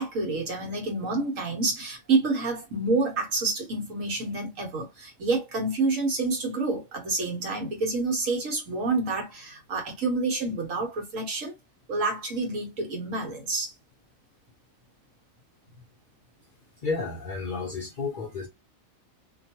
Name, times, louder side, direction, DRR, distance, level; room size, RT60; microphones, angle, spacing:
voice 1, 0.0-11.5 11.9-13.7, right 3 dB, 70° right, 1.4 m, -28 dB
voice 2, 16.8-18.5, left 4 dB, 50° left, 0.6 m, -31 dB
2.9 x 2.3 x 2.8 m
omnidirectional pair, 1.4 m